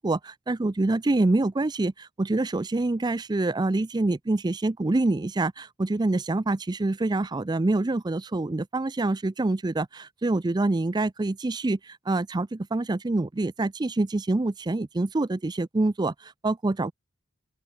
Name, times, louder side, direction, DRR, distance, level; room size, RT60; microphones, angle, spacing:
voice 1, 0.0-16.9, right 2 dB, 20° right, 0.4 m, -26 dB
open air
head